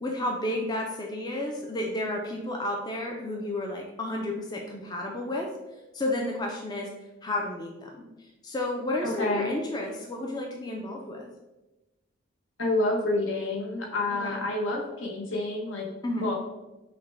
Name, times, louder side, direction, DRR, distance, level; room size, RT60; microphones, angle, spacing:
voice 1, 0.0-5.5 5.9-6.9 7.2-7.9 8.4-11.3 14.2-14.3 16.0-16.3, left 1 dB, 20° left, 0 dB, 0.4 m, -31 dB
voice 2, 9.0-9.5 12.6-15.9 16.2-16.3, left 2 dB, 75° left, 0 dB, 0.9 m, -28 dB
5.7 x 2.1 x 3.3 m, 1.0 s
head